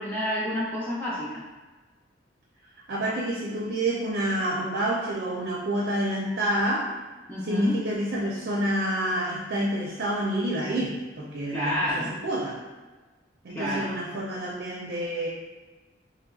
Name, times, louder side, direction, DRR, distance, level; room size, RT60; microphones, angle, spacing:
voice 1, 0.0-1.4 7.3-7.7 11.5-12.2 13.5-13.9, equal, 10° left, -8 dB, 0.4 m, -29 dB
voice 2, 2.9-6.9 7.4-12.6 13.4-15.3, right 1 dB, 65° right, -3 dB, 0.5 m, -28 dB
4.0 x 3.0 x 2.3 m, 1.3 s
head